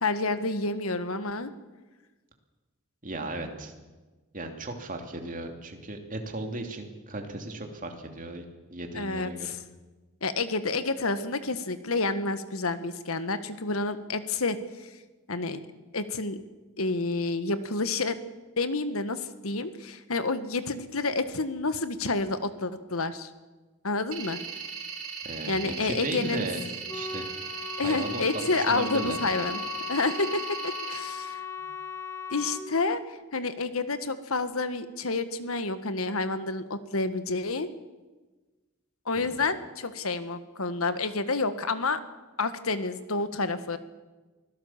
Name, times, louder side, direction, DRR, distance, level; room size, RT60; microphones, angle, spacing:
voice 1, 0.0-1.5 8.9-9.6 10.2-14.9 15.3-15.6 15.9-16.4 16.8-18.3 18.6-23.3 23.8-24.4 25.5-26.5 27.8-29.6 29.9-31.4 32.3-33.0 33.3-37.7 39.0-42.0 42.4-43.8, left 3 dB, 70° left, 11 dB, 1.5 m, -29 dB
voice 2, 3.0-3.7 4.3-9.5 25.2-26.7 26.9-27.3 27.8-29.2 39.1-39.4, right 2 dB, 40° right, 4 dB, 2.8 m, -36 dB
sound 1, 24.1-31.0, right 6 dB, 70° right, 3.3 m, -38 dB
Wind instrument woodwind instrument, 26.9-32.6, left 6 dB, 15° left, 2.0 m, -37 dB
24.5 x 16.5 x 7.3 m, 1.2 s
head